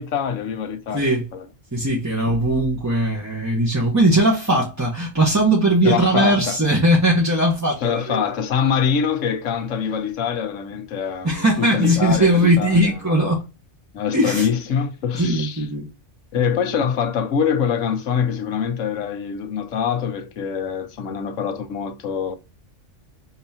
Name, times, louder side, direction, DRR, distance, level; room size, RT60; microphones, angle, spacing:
voice 1, 0.0-1.5 5.8-6.6 7.8-13.4 13.9-15.7 16.3-22.3, left 7 dB, 80° left, 1.2 m, -24 dB
voice 2, 0.9-1.3 1.7-8.3 11.2-13.4 14.1-14.5 15.1-15.9 16.3-16.5, right 1 dB, 15° right, 1.1 m, -19 dB
4.8 x 4.0 x 2.7 m
omnidirectional pair, 1.3 m